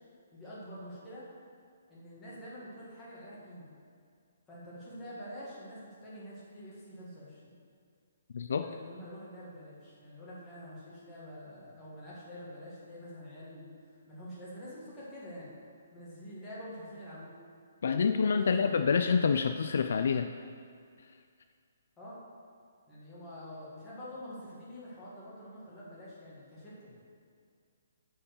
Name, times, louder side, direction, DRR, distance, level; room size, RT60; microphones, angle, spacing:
voice 1, 0.3-1.2 1.9-3.7 4.5-7.5 8.6-15.5 15.9-17.3 18.2-19.0 22.0-22.2 22.9-27.1, equal, 10° left, -9 dB, 1.6 m, -46 dB
voice 2, 8.3-8.7 17.8-20.3, left 5 dB, 55° left, 8 dB, 0.3 m, -27 dB
8.8 x 4.6 x 6.6 m, 2.2 s
hypercardioid pair, 175°, 0 cm